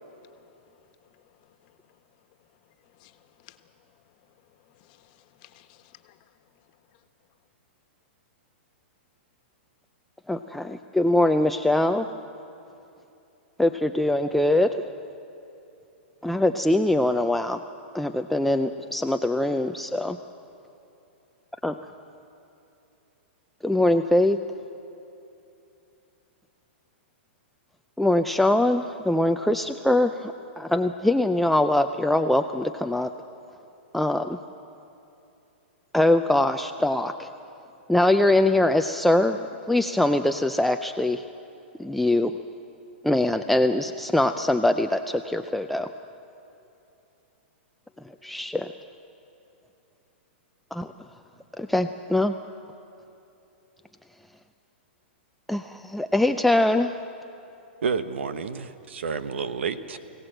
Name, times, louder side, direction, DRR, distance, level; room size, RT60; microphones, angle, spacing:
voice 1, 0.1-2.0 2.8-3.7 4.0-4.1 4.6-6.3, left 14 dB, 45° left, 1.4 m, -59 dB
voice 2, 10.3-12.1 13.6-14.8 16.2-17.6 17.9-20.2 21.6-21.7 23.6-24.4 28.0-33.1 33.9-34.4 35.9-37.3 37.9-39.4 39.7-41.2 41.8-42.4 43.0-45.9 48.2-48.7 50.7-50.9 51.6-52.3 55.5-56.9, left 1 dB, ahead, 0.4 m, -22 dB
voice 3, 57.8-60.0, right 5 dB, 85° right, 1.2 m, -30 dB
24.5 x 17.0 x 7.8 m
hypercardioid pair, 140°, 6 cm